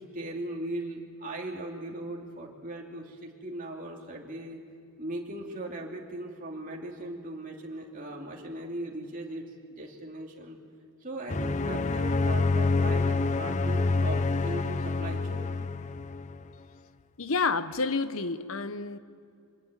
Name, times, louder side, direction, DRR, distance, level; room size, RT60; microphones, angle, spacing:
voice 1, 0.0-4.6 5.0-9.5 9.8-10.6 11.0-15.5, right 1 dB, 40° right, 2.7 m, -38 dB
sound 1, 11.3-16.4, left 3 dB, 35° left, 0.6 m, -27 dB
voice 2, 17.2-19.0, left 4 dB, 70° left, 0.9 m, -29 dB
24.5 x 21.5 x 9.1 m
head